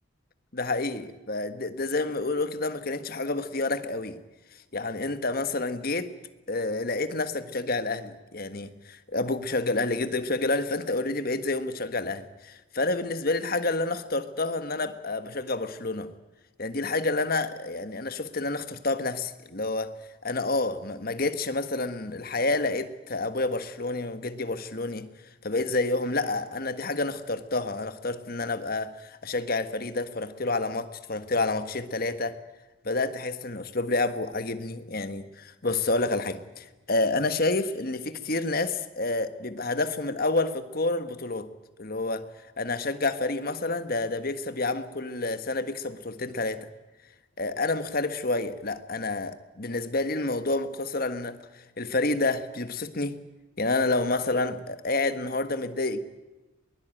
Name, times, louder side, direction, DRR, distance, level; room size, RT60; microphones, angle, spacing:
voice 1, 0.5-4.2 4.7-6.1 6.5-16.1 16.6-19.9 20.2-25.1 25.4-32.4 32.8-41.5 41.8-42.3 42.6-46.7 47.4-53.2 53.6-56.0, left 2 dB, 45° left, 1.5 m, -29 dB
22.5 x 21.5 x 9.1 m
head